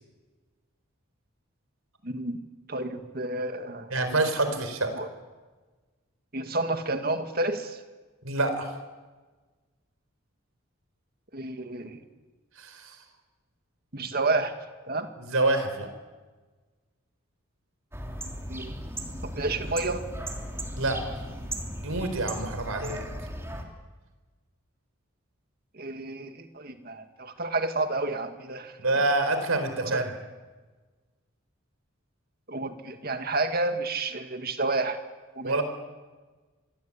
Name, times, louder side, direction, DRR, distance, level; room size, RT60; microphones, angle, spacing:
voice 1, 2.0-2.4 2.7-3.9 4.5-4.6 4.9-5.1 6.3-7.8 11.3-12.0 13.9-14.5 14.9-15.1 18.5-18.7 19.2-20.1 25.7-28.8 29.8-30.1 32.5-35.0 35.4-35.6, right 2 dB, 45° right, 7 dB, 2.1 m, -30 dB
voice 2, 3.9-4.9 8.2-8.7 12.6-12.9 15.2-15.9 20.8-21.0 21.8-23.0 28.8-30.1 35.4-35.6, right 2 dB, 85° right, 8 dB, 4.5 m, -26 dB
sound 1, 17.9-23.6, right 1 dB, 10° right, 3.1 m, -36 dB
26.5 x 22.0 x 8.7 m, 1.3 s
head